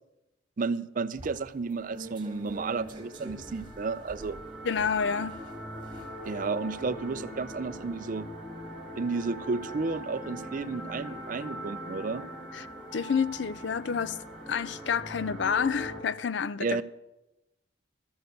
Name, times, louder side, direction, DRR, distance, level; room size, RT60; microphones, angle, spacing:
voice 1, 0.6-4.4 6.2-8.3 9.0-12.2 16.6-16.8, right 4 dB, 45° right, 0.4 m, -32 dB
sound 1, 1.1-13.8 14.2-14.4, right 1 dB, 25° right, 1.5 m, -48 dB
sound 2, 1.9-16.0, equal, ahead, 2.3 m, -42 dB
voice 2, 4.6-5.4 12.5-12.7 12.9-14.2 14.5-16.8, left 6 dB, 70° left, 0.4 m, -29 dB
13.0 x 6.8 x 7.9 m
head